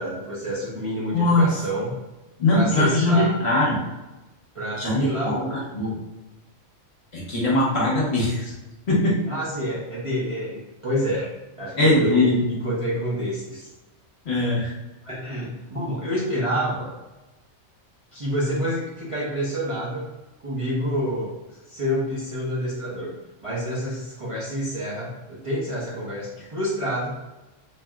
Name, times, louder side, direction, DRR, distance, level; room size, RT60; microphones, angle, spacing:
voice 1, 0.0-1.9 2.5-3.3 4.5-5.7 9.3-11.2 11.5-13.7 15.0-16.9 18.1-20.1 20.4-21.3 21.6-23.1 23.4-27.2, equal, 30° right, -7 dB, 0.7 m, -28 dB
voice 2, 1.1-1.5 2.4-3.8 4.8-5.9 7.1-8.5 8.9-9.2 11.8-12.4 14.2-14.7, left 2 dB, 55° left, -5 dB, 1.2 m, -21 dB
4.1 x 3.1 x 2.3 m, 1.1 s
omnidirectional pair, 1.4 m